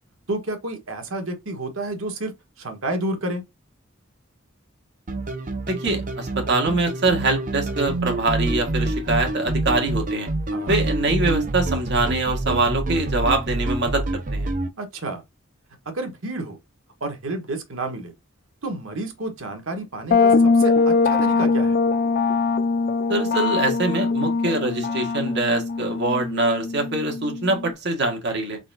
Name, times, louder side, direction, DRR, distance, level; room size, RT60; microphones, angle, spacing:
voice 1, 0.3-3.4 10.5-10.8 14.8-15.2 15.8-16.6 17.0-18.1 18.6-21.8, right 2 dB, 75° right, 1.3 m, -30 dB
sound 1, 5.1-14.7, right 2 dB, 40° right, 0.7 m, -27 dB
voice 2, 5.7-10.3 10.7-14.5 23.1-28.6, right 2 dB, 55° right, 1.6 m, -24 dB
sound 2, 20.1-27.7, left 4 dB, 50° left, 0.4 m, -21 dB
4.0 x 3.8 x 2.6 m
head